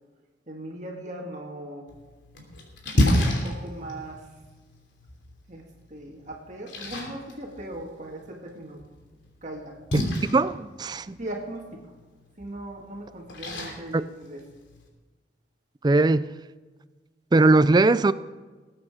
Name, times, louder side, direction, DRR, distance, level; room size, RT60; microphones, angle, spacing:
voice 1, 0.5-1.9 2.9-4.3 5.5-8.8 9.4-9.8 11.2-11.9 12.4-14.4, right 1 dB, 40° right, 0 dB, 1.9 m, -39 dB
Splash splatter, 1.9-14.9, left 1 dB, 85° left, 3.1 m, -32 dB
voice 2, 10.3-11.2 13.9-14.0 15.8-16.3 17.3-18.1, right 2 dB, 25° right, 15 dB, 0.4 m, -19 dB
20.0 x 8.8 x 4.9 m, 1.3 s
head